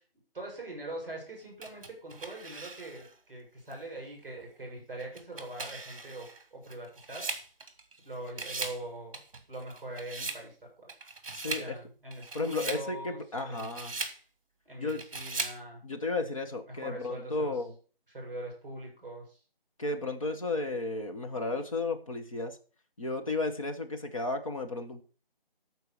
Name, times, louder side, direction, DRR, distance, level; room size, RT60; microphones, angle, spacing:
voice 1, 0.3-6.3 6.5-7.2 8.0-9.2 9.5-10.5 11.4-13.2 13.5-13.9 14.6-15.8 16.7-17.5 18.1-19.4, right 1 dB, 5° right, -1 dB, 5.8 m, -42 dB
sound 1, 1.6-3.1 3.7-3.8 5.0-8.0 8.3-8.8 9.1-10.4 10.9-11.7 12.1-12.8 13.4-14.2 14.9-15.6, right 3 dB, 35° right, 1.8 m, -39 dB
voice 2, 11.3-11.8 12.3-14.0 14.8-15.0 15.8-17.7 19.8-22.6 23.0-25.0, left 3 dB, 35° left, 4 dB, 1.2 m, -33 dB
13.5 x 4.6 x 6.7 m, 0.39 s
figure-of-eight pair, 170°, 30 cm